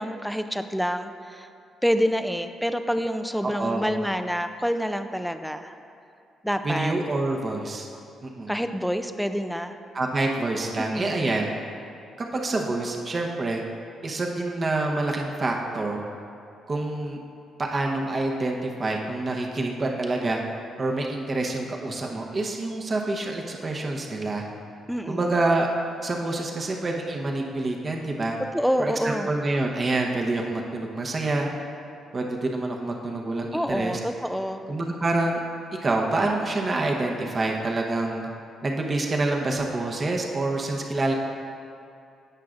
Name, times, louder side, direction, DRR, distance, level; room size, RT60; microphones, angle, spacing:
voice 1, 0.0-1.5 1.8-5.8 6.4-6.9 8.5-9.8 10.8-11.3 24.9-25.3 28.5-29.3 33.5-34.6, equal, ahead, 8 dB, 0.5 m, -27 dB
voice 2, 3.4-3.9 6.6-7.9 8.2-8.5 9.9-11.5 12.2-13.6 14.0-16.0 16.7-17.2 17.6-20.4 20.8-24.4 25.1-25.7 26.0-28.4 28.8-31.5 32.1-34.0 34.7-35.4 35.8-38.3 38.6-41.1, right 2 dB, 35° right, 1 dB, 0.9 m, -27 dB
15.5 x 5.7 x 2.5 m, 2.5 s
cardioid pair, 90°, 0 cm